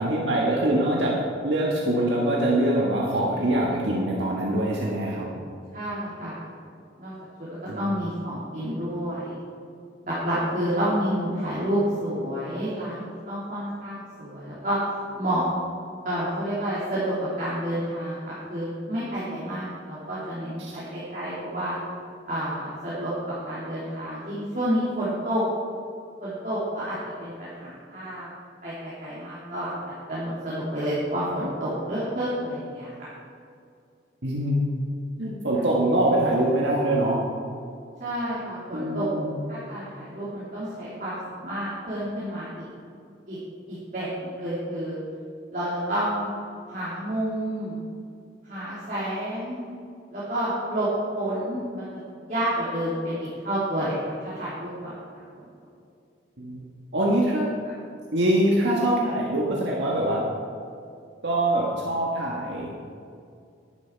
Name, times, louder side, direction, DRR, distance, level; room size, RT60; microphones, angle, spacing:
voice 1, 0.0-5.3 7.7-8.0 20.6-20.8 34.2-34.6 35.2-37.2 38.7-39.4 56.4-57.5 58.1-60.2 61.2-62.9, right 1 dB, 75° right, -3 dB, 1.6 m, -24 dB
voice 2, 5.7-6.5 7.0-7.1 7.8-9.4 10.0-14.8 15.1-15.4 16.0-21.7 22.3-25.4 26.2-28.3 28.6-29.7 30.1-32.9 38.0-39.1 39.5-42.7 43.3-43.4 43.7-45.0 45.5-46.3 46.7-47.8 48.4-49.6 50.1-50.9 51.1-51.8 52.2-55.5, right 1 dB, 45° right, -10 dB, 3.1 m, -29 dB
11.0 x 11.0 x 4.6 m, 2.4 s
head